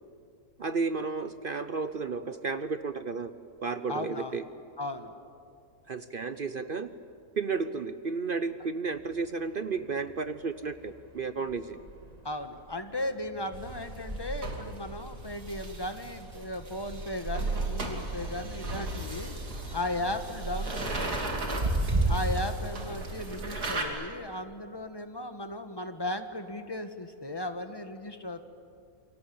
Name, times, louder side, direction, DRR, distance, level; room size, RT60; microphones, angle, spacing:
voice 1, 0.6-3.3 3.6-4.4 5.9-6.9 7.4-11.8, right 4 dB, 45° right, 11 dB, 0.7 m, -32 dB
voice 2, 3.9-4.4 4.8-5.1 12.2-19.3 19.7-21.7 22.1-28.4, left 1 dB, 15° left, 8 dB, 1.4 m, -36 dB
sound 1, 8.9-10.1 10.4-22.1, right 2 dB, 25° right, 2.2 m, -37 dB
sound 2, 13.5-23.8, right 2 dB, 85° right, 3.4 m, -36 dB
28.5 x 23.0 x 8.7 m, 2.4 s
omnidirectional pair, 1.6 m